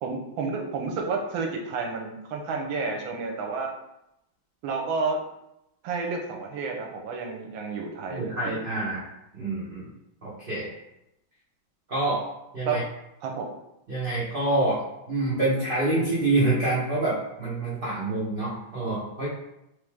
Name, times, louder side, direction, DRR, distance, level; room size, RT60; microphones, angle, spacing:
voice 1, 0.0-3.7 4.6-5.2 5.8-8.6 12.6-12.8 13.2-13.5, right 4 dB, 85° right, 2 dB, 1.4 m, -30 dB
voice 2, 8.1-9.1 9.4-9.9 10.2-10.7 11.9-12.3 12.5-12.8 13.9-19.3, right 2 dB, 45° right, -8 dB, 0.7 m, -27 dB
3.8 x 3.2 x 3.5 m, 0.85 s
omnidirectional pair, 2.2 m